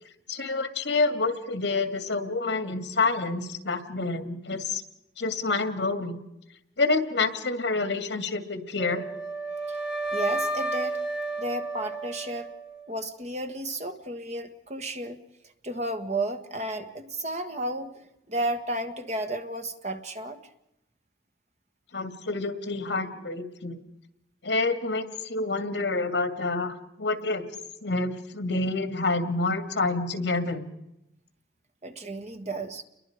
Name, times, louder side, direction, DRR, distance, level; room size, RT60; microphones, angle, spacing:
voice 1, 0.3-4.8 5.2-6.2 6.8-9.0 21.9-23.8 24.4-27.4 27.8-30.6, left 3 dB, 70° left, 8 dB, 2.2 m, -28 dB
Wind instrument woodwind instrument, 8.8-12.9, right 2 dB, 5° right, 1.9 m, -32 dB
voice 2, 10.1-11.0 11.4-12.5 12.9-15.2 15.6-17.9 18.3-20.4 31.8-32.8, right 1 dB, 35° right, 7 dB, 1.6 m, -32 dB
29.5 x 22.5 x 5.1 m, 0.87 s
head